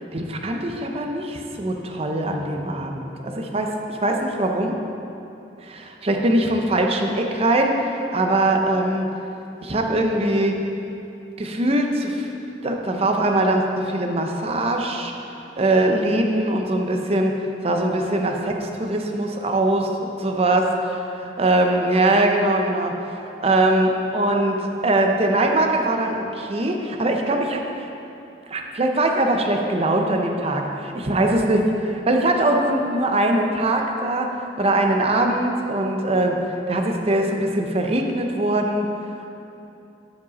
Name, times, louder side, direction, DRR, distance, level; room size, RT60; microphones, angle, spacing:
voice 1, 0.1-4.8 5.6-9.1 9.6-10.6 11.4-12.3 12.6-15.1 15.6-19.8 20.2-20.7 21.1-23.0 23.4-27.9 28.5-30.6 31.1-36.4 36.7-38.9, right 1 dB, 35° right, 3 dB, 0.7 m, -22 dB
12.0 x 5.2 x 4.1 m, 2.8 s
head